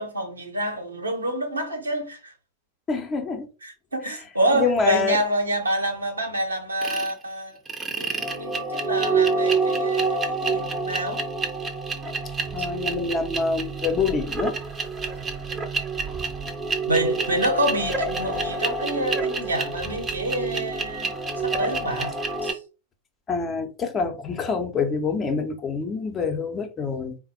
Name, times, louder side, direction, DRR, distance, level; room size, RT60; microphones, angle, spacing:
voice 1, 0.0-2.3 3.6-7.6 7.9-11.2 12.6-12.7 16.9-22.1 22.4-22.6, right 1 dB, 80° right, 1.0 m, -27 dB
voice 2, 2.9-3.5 4.5-5.2 12.5-14.6 23.3-27.2, left 5 dB, 25° left, 0.8 m, -26 dB
sound 1, 6.8-7.1 7.7-22.5, right 4 dB, 15° right, 0.7 m, -27 dB
4.0 x 2.2 x 4.1 m
figure-of-eight pair, 90°, 0 cm